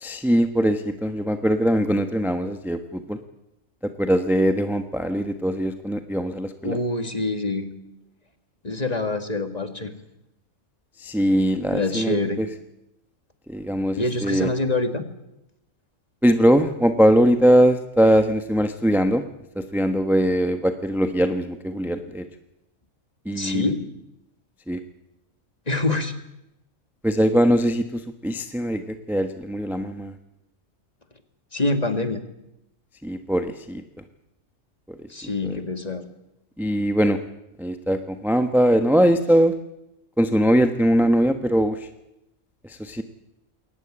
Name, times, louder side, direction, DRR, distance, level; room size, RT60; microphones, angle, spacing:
voice 1, 0.0-3.2 4.0-6.8 11.0-12.5 13.5-14.5 16.2-19.2 19.6-22.2 23.2-23.7 24.7-24.8 27.0-30.1 33.0-33.8 35.4-35.6 36.6-37.2 37.6-39.5 40.2-41.9 42.6-43.0, equal, ahead, 7 dB, 1.0 m, -21 dB
voice 2, 6.6-7.7 8.6-9.9 11.7-12.4 14.0-15.1 23.4-23.8 25.7-26.1 31.5-32.2 35.1-36.1, left 2 dB, 30° left, 8 dB, 2.0 m, -25 dB
22.0 x 18.5 x 8.9 m, 0.88 s
omnidirectional pair, 1.4 m